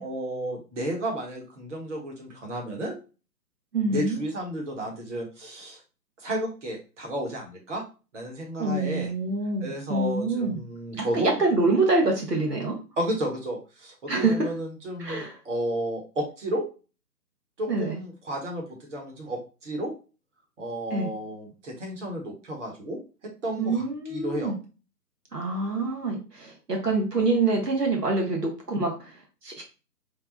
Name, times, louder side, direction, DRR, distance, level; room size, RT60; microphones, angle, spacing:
voice 1, 0.0-2.9 3.9-5.8 6.2-7.8 8.1-9.1 9.6-11.3 13.0-16.6 17.6-19.9 20.6-23.8 24.1-24.5, right 1 dB, 50° right, 0 dB, 1.3 m, -32 dB
voice 2, 3.7-4.2 8.6-10.6 11.0-12.8 14.1-14.5 15.0-15.4 17.7-18.0 20.9-21.1 23.6-24.6 25.3-29.6, right 3 dB, 80° right, 1 dB, 1.2 m, -26 dB
3.4 x 2.2 x 3.8 m, 0.33 s
figure-of-eight pair, 135°, 47 cm